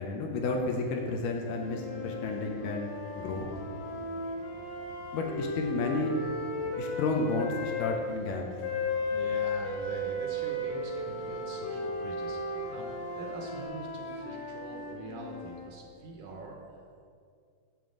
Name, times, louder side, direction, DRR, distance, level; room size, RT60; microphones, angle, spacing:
voice 1, 0.0-3.5 5.1-6.2 6.8-8.5, left 3 dB, 80° left, 2 dB, 2.1 m, -32 dB
sound 1, 0.5-13.7, left 1 dB, 50° left, 1.2 m, -48 dB
sound 2, 1.6-7.9 8.6-15.7, left 2 dB, 65° left, 2.0 m, -35 dB
voice 2, 9.1-17.0, right 3 dB, 75° right, 0 dB, 2.0 m, -45 dB
8.9 x 7.0 x 3.8 m, 2.3 s
omnidirectional pair, 4.1 m